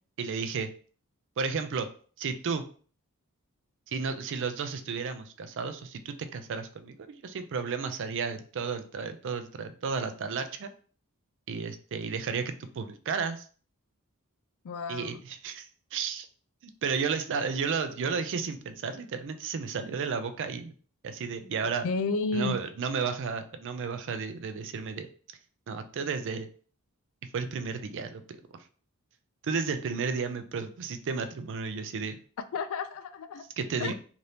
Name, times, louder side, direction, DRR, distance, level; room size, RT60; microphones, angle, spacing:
voice 1, 0.2-0.7 1.4-1.9 2.2-2.6 3.9-7.0 7.2-10.7 11.5-13.5 14.9-16.3 16.6-20.7 21.0-21.8 22.3-25.1 25.7-26.5 27.3-28.4 29.4-32.2 33.6-33.9, right 5 dB, 55° right, 9 dB, 0.4 m, -33 dB
voice 2, 14.6-15.2 21.8-22.6 32.5-33.5 33.8-33.9, left 3 dB, 65° left, 11 dB, 0.3 m, -31 dB
2.8 x 2.6 x 3.3 m, 0.42 s
head